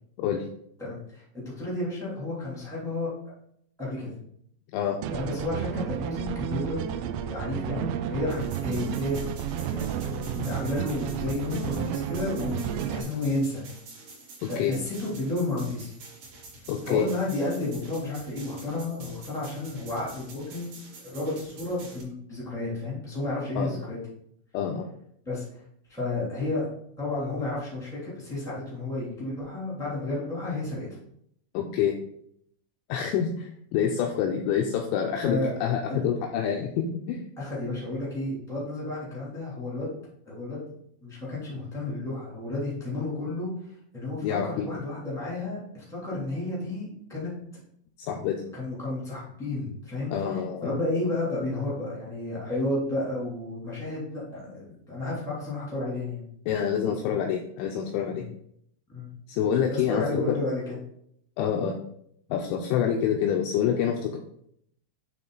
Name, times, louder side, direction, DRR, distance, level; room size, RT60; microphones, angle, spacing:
voice 1, 0.8-3.1 3.8-4.1 5.1-13.6 14.4-15.9 16.8-20.7 21.0-24.0 25.2-25.4 25.9-26.7 27.0-30.9 33.0-33.1 35.2-36.0 37.4-39.9 40.2-40.7 41.0-43.5 43.9-47.3 48.5-56.2 58.1-58.2 58.9-59.2 59.7-60.8, left 2 dB, 5° left, -8 dB, 0.5 m, -32 dB
sound 1, 5.0-13.0, right 10 dB, 85° right, 3.0 m, -32 dB
sound 2, 8.3-22.0, right 3 dB, 65° right, 2.1 m, -47 dB
voice 2, 14.4-14.7 16.7-17.1 23.6-23.7 24.5-24.9 31.5-32.0 32.9-37.2 44.2-44.7 48.0-48.4 50.1-50.8 56.5-58.3 59.3-60.3 61.4-61.8 62.3-64.2, left 8 dB, 90° left, 3 dB, 2.6 m, -27 dB
9.2 x 3.6 x 3.9 m, 0.71 s
omnidirectional pair, 6.0 m